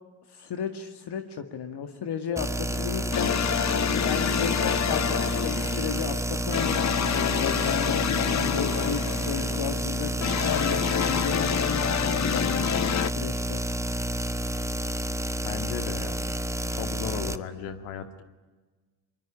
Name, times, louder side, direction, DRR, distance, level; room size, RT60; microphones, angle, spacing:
voice 1, 0.3-3.3 3.9-6.8 7.3-10.1 10.4-12.7 13.1-13.6, left 7 dB, 55° left, 7 dB, 2.0 m, -34 dB
sound 1, 2.4-17.4, right 1 dB, 5° right, 1.2 m, -30 dB
sound 2, 2.7-13.1, left 9 dB, 35° left, 0.7 m, -28 dB
voice 2, 15.4-16.2 16.7-18.2, left 8 dB, 80° left, 9 dB, 2.3 m, -35 dB
23.5 x 21.5 x 10.0 m, 1.3 s
supercardioid pair, 70°, 48 cm